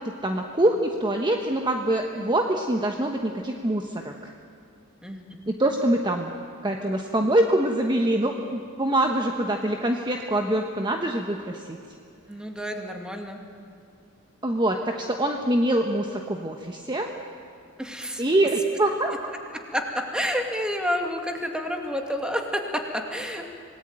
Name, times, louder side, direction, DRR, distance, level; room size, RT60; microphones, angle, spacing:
voice 1, 0.2-4.1 5.5-6.3 6.6-11.8 14.4-17.1 18.2-19.1, right 1 dB, 20° right, 3 dB, 1.2 m, -24 dB
voice 2, 5.0-5.4 12.3-13.4 17.8-18.2 19.7-22.8 23.1-23.5, equal, 5° right, 3 dB, 2.4 m, -29 dB
26.5 x 19.0 x 9.1 m, 2.6 s
head